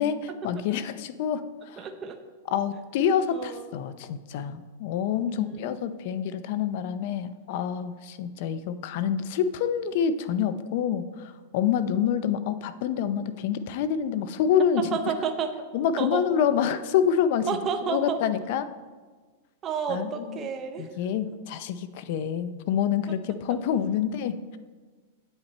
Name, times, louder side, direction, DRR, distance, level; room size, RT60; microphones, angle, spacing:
voice 1, 0.0-1.9 2.5-15.2 15.7-17.5 17.9-18.7 19.9-20.5 20.8-24.6, left 8 dB, 55° left, 13 dB, 0.6 m, -27 dB
voice 2, 1.8-2.2 3.3-3.6 5.3-5.5 14.9-15.5 16.0-16.2 17.5-18.2 19.6-20.9 23.1-23.2, right 6 dB, 25° right, 5 dB, 0.6 m, -30 dB
8.7 x 8.0 x 4.2 m, 1.4 s
supercardioid pair, 140°, 0 cm